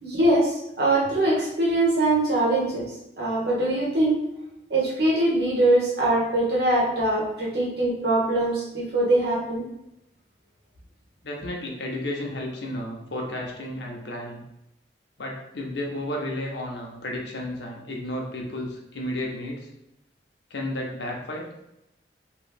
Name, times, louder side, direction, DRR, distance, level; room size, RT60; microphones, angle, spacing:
voice 1, 0.0-2.9 3.2-4.2 4.7-9.7, right 1 dB, 70° right, -5 dB, 1.4 m, -22 dB
voice 2, 11.2-14.4 15.2-19.7 20.5-21.5, left 1 dB, 85° left, -1 dB, 0.8 m, -32 dB
3.0 x 3.0 x 3.4 m, 0.85 s
head